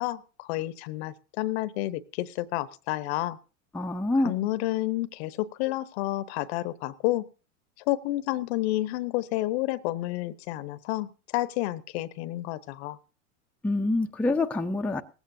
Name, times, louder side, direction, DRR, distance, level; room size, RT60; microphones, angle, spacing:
voice 1, 0.0-3.4 4.2-7.3 7.9-13.0, left 16 dB, 55° left, 17 dB, 0.9 m, -30 dB
voice 2, 3.7-4.3 13.6-15.0, left 2 dB, 5° left, 4 dB, 0.6 m, -26 dB
18.5 x 15.5 x 2.6 m, 0.34 s
hypercardioid pair, 110°, 39 cm